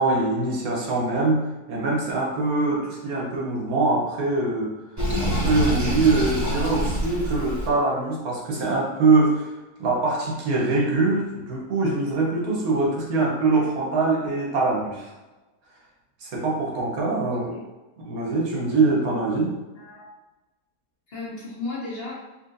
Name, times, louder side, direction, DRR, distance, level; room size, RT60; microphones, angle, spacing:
voice 1, 0.0-4.7 5.2-9.5 9.8-15.1 16.2-17.5 18.0-19.6, right 3 dB, 75° right, -3 dB, 1.4 m, -23 dB
Sink (filling or washing), 5.0-7.7, right 1 dB, 25° right, 0.4 m, -26 dB
voice 2, 17.3-17.6 19.8-20.1 21.1-22.1, left 3 dB, 45° left, -6 dB, 1.0 m, -35 dB
4.3 x 2.8 x 2.6 m, 1.1 s
omnidirectional pair, 1.6 m